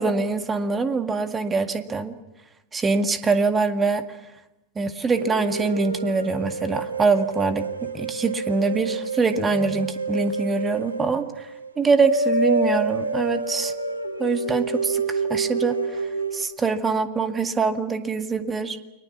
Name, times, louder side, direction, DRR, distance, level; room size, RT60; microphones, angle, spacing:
voice 1, 0.0-2.1 2.7-4.2 4.8-7.7 7.9-13.7 14.2-18.8, right 4 dB, 15° right, 9 dB, 1.9 m, -24 dB
sound 1, 5.1-16.5, right 3 dB, 80° right, 2.7 m, -28 dB
30.0 x 22.5 x 7.4 m, 0.99 s
figure-of-eight pair, 90°, 0 cm